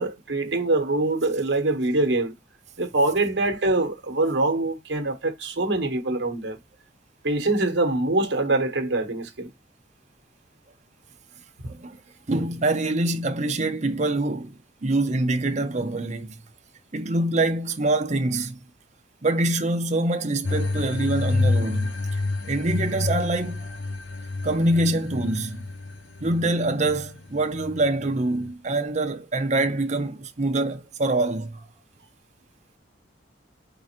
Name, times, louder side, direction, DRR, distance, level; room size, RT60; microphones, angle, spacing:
voice 1, 0.0-2.3 2.8-6.6 7.2-9.5, right 2 dB, 65° right, 1.1 m, -24 dB
voice 2, 12.3-14.5 14.8-16.4 16.9-18.6 19.2-23.7 24.4-25.7 26.2-31.7, right 2 dB, 40° right, 0.7 m, -25 dB
sound 1, 20.4-28.5, left 3 dB, 85° left, 0.8 m, -28 dB
4.2 x 3.8 x 2.9 m
head